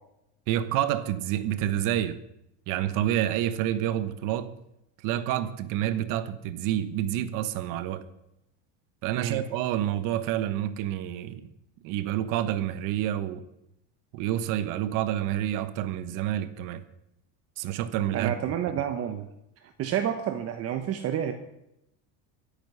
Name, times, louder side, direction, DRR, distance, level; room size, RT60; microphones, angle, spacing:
voice 1, 0.5-2.2 2.7-4.5 5.0-8.0 9.0-11.5 11.8-13.4 14.1-16.8 17.6-18.3, right 12 dB, 60° right, 1.3 m, -28 dB
voice 2, 18.1-19.3 19.8-21.3, right 10 dB, 40° right, 1.3 m, -29 dB
23.0 x 8.8 x 5.7 m
supercardioid pair, 130°, 35 cm